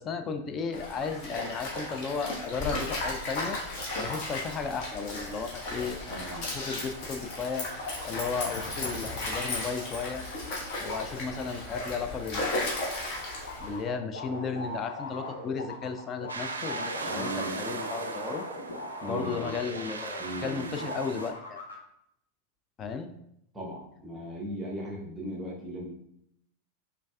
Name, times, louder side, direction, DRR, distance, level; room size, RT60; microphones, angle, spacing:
voice 1, 0.0-3.6 4.0-6.2 6.4-7.7 8.0-10.2 10.8-12.8 13.6-18.4 19.0-21.6 22.8-23.1, left 5 dB, 25° left, 7 dB, 0.4 m, -34 dB
Stream, 0.7-13.8, left 2 dB, 40° left, 1.3 m, -35 dB
voice 2, 6.1-6.5 17.0-17.6 19.0-19.6 20.2-20.9 23.5-25.9, right 1 dB, 10° right, -4 dB, 0.9 m, -38 dB
sound 1, 13.5-20.5 20.8-21.7, left 2 dB, 70° left, 0.8 m, -40 dB
sound 2, 16.3-21.3, right 3 dB, 70° right, 0.4 m, -37 dB
5.1 x 3.3 x 2.3 m, 0.76 s
figure-of-eight pair, 90°, 0 cm